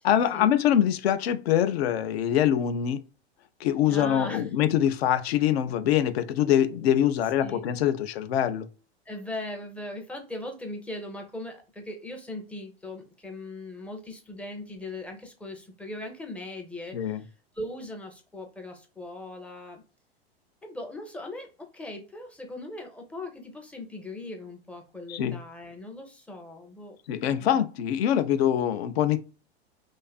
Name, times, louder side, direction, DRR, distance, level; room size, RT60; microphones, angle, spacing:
voice 1, 0.0-3.0 3.6-8.7 16.9-17.2 25.1-25.4 27.1-29.2, left 10 dB, 65° left, 0.5 m, -24 dB
voice 2, 3.9-4.4 7.4-7.7 9.1-17.3 17.5-19.8 20.6-27.6, left 1 dB, 5° left, 0.4 m, -39 dB
2.5 x 2.4 x 2.2 m
hypercardioid pair, 100°, 33 cm